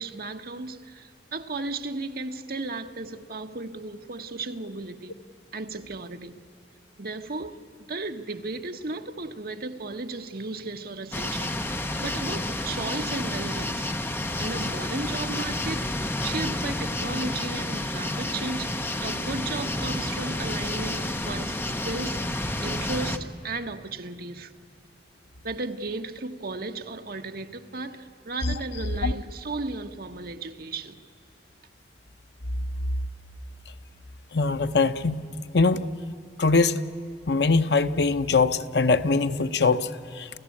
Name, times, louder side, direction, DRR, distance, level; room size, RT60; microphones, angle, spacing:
voice 1, 0.0-5.2 5.5-6.4 7.0-13.9 14.4-18.7 19.0-22.4 22.6-24.5 25.4-31.0, right 3 dB, 55° right, 1.2 m, -35 dB
sound 1, 11.1-23.2, left 1 dB, 10° left, 0.9 m, -30 dB
voice 2, 34.3-35.2 35.5-35.8 36.4-36.8 37.3-40.3, left 3 dB, 65° left, 0.9 m, -22 dB
28.5 x 15.5 x 8.6 m
head